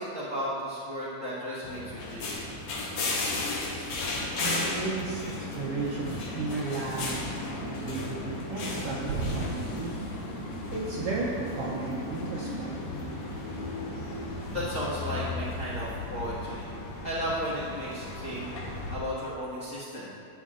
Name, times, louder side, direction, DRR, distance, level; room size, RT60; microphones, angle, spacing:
voice 1, 0.0-2.3 14.3-16.6 17.0-18.5 18.9-20.1, equal, 40° left, -10 dB, 1.1 m, -34 dB
sound 1, 1.6-19.0, left 2 dB, 65° left, 2.4 m, -35 dB
voice 2, 4.4-7.3 7.6-10.0 10.3-12.7, right 4 dB, 70° right, -4 dB, 1.4 m, -34 dB
sound 2, 6.9-16.6 17.0-17.2 17.6-18.3, right 4 dB, 85° right, 2.2 m, -43 dB
11.0 x 7.4 x 3.7 m, 2.5 s
omnidirectional pair, 3.5 m